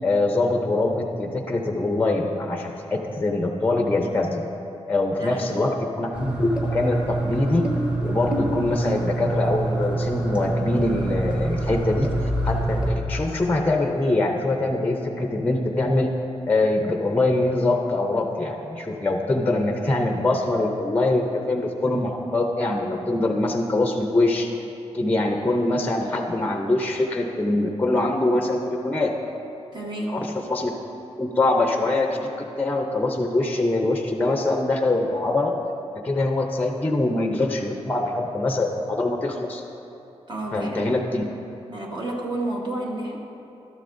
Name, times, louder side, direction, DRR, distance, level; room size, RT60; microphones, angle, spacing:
voice 1, 0.0-4.4 4.9-7.7 8.0-12.1 12.4-16.1 16.5-24.5 24.9-29.1 30.1-30.7 31.2-35.5 35.9-39.6 40.5-41.2, left 2 dB, 15° left, 3 dB, 0.5 m, -23 dB
voice 2, 5.2-5.7 29.7-30.3 40.3-40.9 41.7-43.2, right 1 dB, 40° right, -2 dB, 1.2 m, -31 dB
sound 1, 6.1-12.9, right 2 dB, 10° right, 1.2 m, -26 dB
12.0 x 11.0 x 2.5 m, 3.0 s
wide cardioid pair, 120°, 11 cm